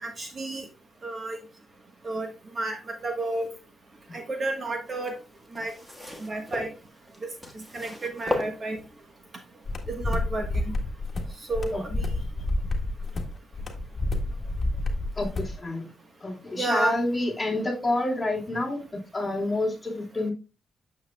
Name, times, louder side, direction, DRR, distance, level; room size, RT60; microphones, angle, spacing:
voice 1, 0.0-0.7 1.0-1.4 2.0-2.3 2.5-3.5 4.1-5.2 5.5-5.7 6.2-6.7 7.2-7.3 7.5-8.8 9.9-10.7 11.4-12.0 16.6-17.0, right 2 dB, 35° right, 5 dB, 1.3 m, -31 dB
sound 1, 4.9-9.2 9.9-10.0, left 1 dB, 5° right, 1.5 m, -35 dB
sound 2, 9.7-15.6, left 2 dB, 35° left, 1.6 m, -29 dB
voice 2, 15.2-15.9 16.2-20.3, left 2 dB, 15° left, -2 dB, 2.6 m, -28 dB
8.9 x 7.1 x 2.3 m, 0.30 s
cardioid pair, 125°, 0 cm